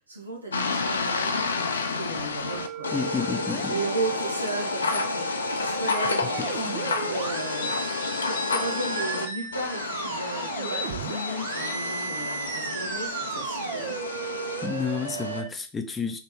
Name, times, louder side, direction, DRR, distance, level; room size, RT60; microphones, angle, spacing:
voice 1, 0.0-14.0, right 3 dB, 80° right, 1.0 m, -36 dB
sound 1, 0.5-9.3 9.5-15.4, left 4 dB, 70° left, 0.5 m, -30 dB
sound 2, 2.5-15.5, right 7 dB, 50° right, 0.6 m, -35 dB
voice 2, 2.9-3.7 6.4-6.5 14.6-16.2, left 6 dB, 15° left, 0.6 m, -30 dB
sound 3, 7.4-9.5 9.9-11.8 12.4-14.9, left 4 dB, 50° left, 0.9 m, -41 dB
3.4 x 2.9 x 4.4 m
figure-of-eight pair, 90°, 0 cm